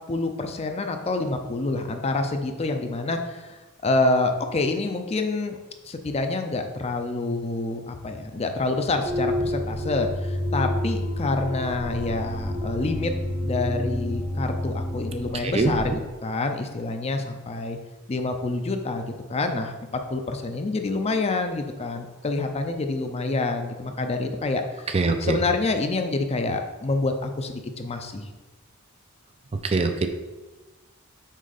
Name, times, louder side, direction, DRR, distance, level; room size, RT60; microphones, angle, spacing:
voice 1, 0.1-5.6 5.8-13.1 13.4-17.8 18.1-28.3, left 2 dB, 30° left, 6 dB, 0.5 m, -27 dB
sound 1, 9.0-15.9, left 1 dB, 85° left, 2.0 m, -29 dB
voice 2, 24.9-25.4 29.6-30.1, right 3 dB, 30° right, 6 dB, 0.4 m, -23 dB
6.3 x 4.3 x 4.0 m, 1.2 s
head